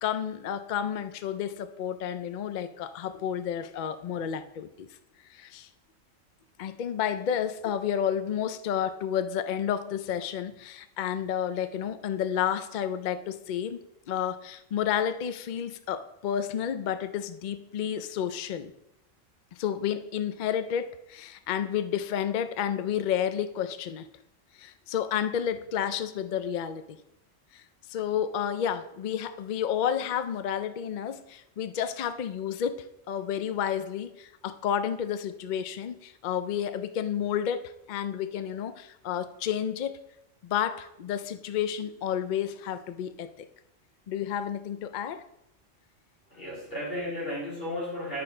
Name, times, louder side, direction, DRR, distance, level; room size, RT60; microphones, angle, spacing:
voice 1, 0.0-4.9 5.3-5.7 6.6-18.7 19.5-24.1 24.5-27.0 27.5-27.6 27.9-40.0 40.4-43.5 44.1-45.2, left 9 dB, 65° left, 10 dB, 0.4 m, -31 dB
voice 2, 46.3-48.2, left 1 dB, 50° left, -6 dB, 3.2 m, -34 dB
9.9 x 5.9 x 3.7 m, 0.84 s
omnidirectional pair, 1.3 m